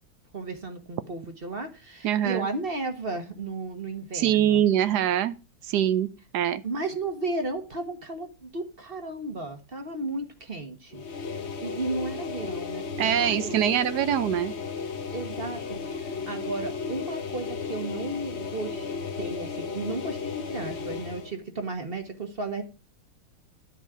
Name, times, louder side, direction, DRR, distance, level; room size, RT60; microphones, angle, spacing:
voice 1, 0.3-4.6 6.6-11.0 11.3-13.7 15.1-18.9 19.2-22.6, right 2 dB, 35° right, 1.3 m, -34 dB
voice 2, 2.0-2.5 4.1-5.4 5.6-6.1 6.3-6.6 13.0-14.5, right 10 dB, 70° right, 1.1 m, -23 dB
sound 1, 10.9-21.3, left 5 dB, 45° left, 0.9 m, -34 dB
10.0 x 7.4 x 4.8 m
omnidirectional pair, 2.2 m